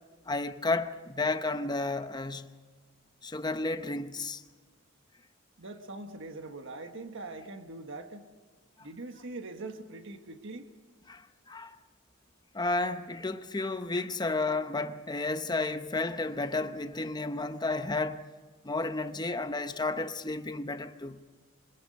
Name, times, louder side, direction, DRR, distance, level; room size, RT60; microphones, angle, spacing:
voice 1, 0.3-2.5 3.2-4.4 11.1-11.8 12.5-18.2 18.6-21.2, left 3 dB, 20° left, 0.9 m, -32 dB
voice 2, 5.6-8.3 8.8-10.7, right 2 dB, 65° right, 1.4 m, -42 dB
25.5 x 21.5 x 5.4 m
head